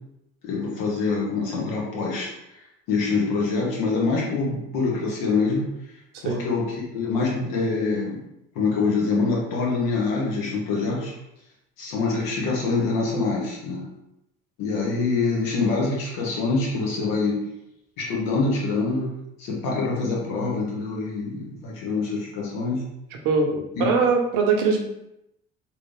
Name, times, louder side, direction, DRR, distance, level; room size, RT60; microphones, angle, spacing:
voice 1, 0.4-2.3 2.9-5.6 6.2-8.2 8.5-11.1 11.8-13.8 14.6-17.4 18.0-19.1 19.4-22.8 23.8-23.9, left 4 dB, 70° left, -3 dB, 1.3 m, -25 dB
voice 2, 23.2-24.8, right 5 dB, 65° right, 2 dB, 0.8 m, -22 dB
3.3 x 2.8 x 3.2 m, 0.85 s
hypercardioid pair, 60°, 34 cm